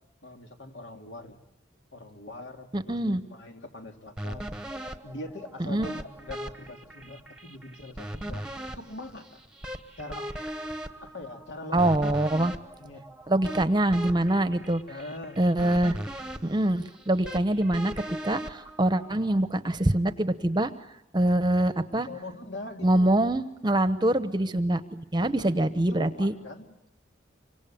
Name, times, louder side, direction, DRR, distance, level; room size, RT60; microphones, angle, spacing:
voice 1, 0.2-1.4 1.9-4.5 5.0-9.4 10.0-10.3 11.0-12.3 12.8-13.1 14.9-15.4 22.0-23.1 25.2-26.7, left 2 dB, 70° left, 3 dB, 2.8 m, -42 dB
voice 2, 2.7-3.2 5.6-5.9 11.7-12.5 13.3-14.8 15.4-16.0 16.4-17.9 18.2-20.7 21.1-22.1 22.8-26.3, right 1 dB, 25° right, 12 dB, 1.0 m, -24 dB
sound 1, 4.2-19.4, right 1 dB, 5° right, 1.2 m, -39 dB
27.0 x 25.0 x 8.7 m, 0.82 s
head